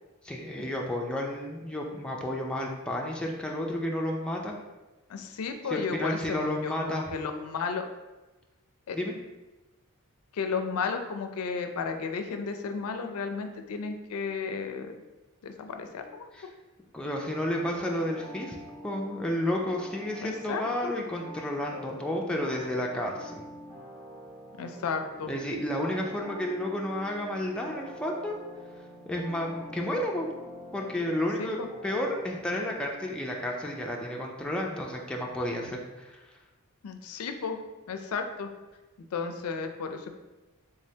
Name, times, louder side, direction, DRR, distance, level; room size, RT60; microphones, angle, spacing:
voice 1, 0.2-4.5 5.7-7.1 8.9-9.1 16.3-16.5 16.9-18.6 18.8-23.4 25.3-28.4 29.1-30.3 30.7-31.6 31.8-36.2, left 1 dB, 5° left, -1 dB, 0.3 m, -31 dB
voice 2, 5.1-7.9 8.9-9.0 10.3-14.9 15.4-16.2 20.2-20.9 24.6-25.3 31.4-31.7 36.8-37.6 37.9-38.5 39.1-40.1, left 5 dB, 80° left, 6 dB, 0.4 m, -33 dB
sound 1, 17.5-32.7, equal, 15° right, 1.4 m, -46 dB
3.6 x 3.2 x 2.7 m, 1.1 s
head